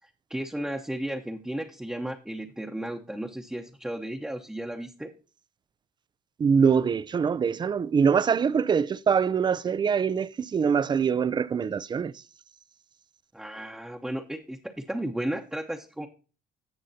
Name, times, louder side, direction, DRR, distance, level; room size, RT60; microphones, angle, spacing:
voice 1, 0.3-5.1 13.3-16.1, right 1 dB, 5° right, 0.9 m, -34 dB
voice 2, 6.4-12.1, right 6 dB, 25° right, 0.4 m, -24 dB
16.5 x 6.3 x 2.8 m
cardioid pair, 110°, 17 cm